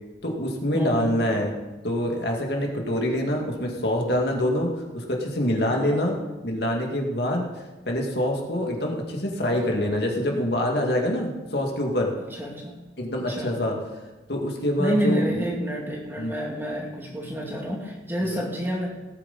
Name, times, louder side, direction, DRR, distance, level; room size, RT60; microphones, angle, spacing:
voice 1, 0.2-1.5 1.8-4.7 4.9-6.1 6.4-7.5 7.9-12.1 13.0-13.8 14.3-15.2 16.2-16.3 18.3-18.4, left 1 dB, 65° left, 1 dB, 2.1 m, -25 dB
voice 2, 0.7-1.1 5.7-6.0 12.3-12.7 13.3-13.5 14.8-18.9, equal, 10° right, -2 dB, 2.3 m, -29 dB
18.0 x 9.3 x 4.2 m, 1.1 s
head